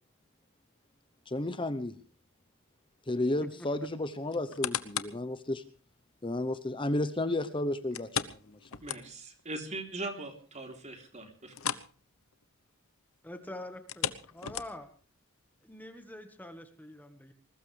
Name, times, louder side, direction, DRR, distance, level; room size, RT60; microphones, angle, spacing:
voice 1, 1.3-1.9 3.1-5.6 6.2-8.1 8.4-8.7, left 1 dB, 25° left, 11 dB, 0.9 m, -32 dB
sound 1, 4.3-5.2 5.7-5.8 7.9-9.4 9.7-9.8 10.3-10.4 11.5-11.9 12.2-12.4 13.7-15.0 15.6-15.7, left 9 dB, 80° left, 1.0 m, -36 dB
voice 2, 8.8-11.6, right 2 dB, 35° right, 5 dB, 3.4 m, -40 dB
voice 3, 13.2-14.9 15.6-17.3, left 1 dB, 10° left, 7 dB, 1.5 m, -45 dB
21.0 x 19.0 x 3.4 m, 0.40 s
head